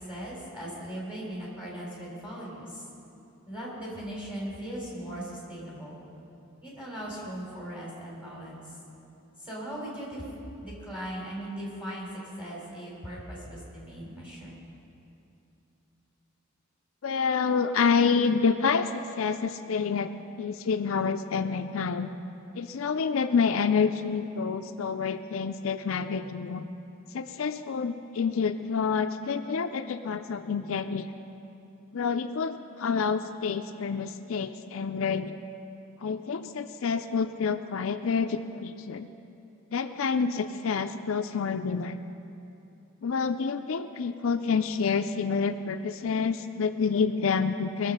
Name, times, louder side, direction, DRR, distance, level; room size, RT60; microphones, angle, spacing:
voice 1, 0.1-2.8 3.5-6.0 6.6-8.6 9.4-10.3 10.6-12.1 12.4-14.5, right 1 dB, 5° right, -6 dB, 3.9 m, -38 dB
voice 2, 17.0-22.1 22.6-26.7 27.1-31.1 31.9-35.4 36.0-39.1 39.7-42.0 43.0-47.9, left 5 dB, 70° left, 8 dB, 0.4 m, -28 dB
21.0 x 7.4 x 5.5 m, 2.7 s
head